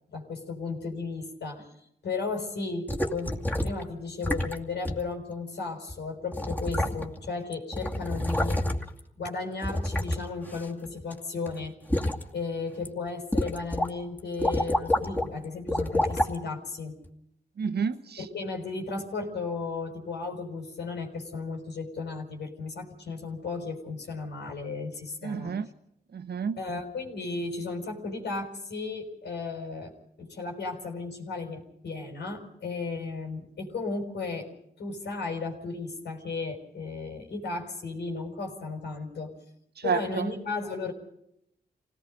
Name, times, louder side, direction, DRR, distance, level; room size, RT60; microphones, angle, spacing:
voice 1, 0.1-1.7 2.0-8.6 9.2-11.8 12.3-17.0 18.2-25.5 26.6-34.5 34.8-39.3 39.8-40.9, left 4 dB, 90° left, 5.3 m, -35 dB
sound 1, 2.9-3.8 4.2-4.6 4.8-5.0 5.9-6.0 6.3-7.3 7.5-9.0 9.6-11.1 11.5-12.2 12.7-12.9 13.3-13.9 14.2-15.3 15.7-16.4 17.0-17.1, left 1 dB, 10° left, 2.4 m, -28 dB
voice 2, 17.6-18.2 25.2-25.7 26.1-26.6 39.8-40.3, right 6 dB, 75° right, 1.4 m, -30 dB
27.0 x 18.5 x 5.3 m
cardioid pair, 75°, 17 cm